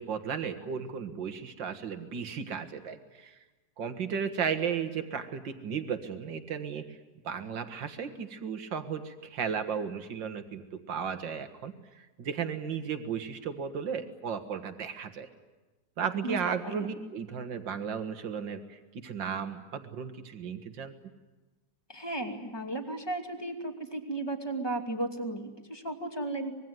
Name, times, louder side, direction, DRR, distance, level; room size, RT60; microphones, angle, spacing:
voice 1, 0.0-3.4 3.8-7.0 7.2-15.3 16.0-20.9, right 7 dB, 80° right, 8 dB, 2.3 m, -35 dB
voice 2, 16.6-17.0 21.9-26.5, right 2 dB, 15° left, 4 dB, 2.5 m, -35 dB
25.5 x 22.0 x 9.3 m, 1.2 s
omnidirectional pair, 2.0 m